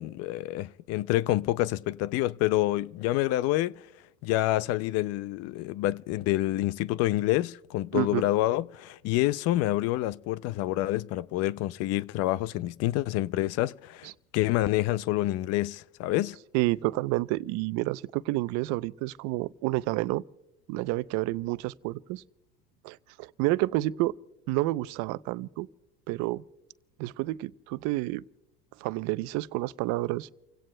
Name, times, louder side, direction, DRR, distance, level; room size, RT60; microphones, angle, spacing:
voice 1, 0.0-3.8 4.2-16.4, left 16 dB, 55° left, 0.5 m, -27 dB
voice 2, 7.9-8.3 14.0-14.1 16.5-20.2 20.7-22.2 22.8-24.1 24.5-25.7 26.1-26.4 27.0-28.2 28.8-30.3, right 19 dB, 65° right, 0.6 m, -29 dB
30.0 x 17.0 x 2.2 m
supercardioid pair, 120°, 30 cm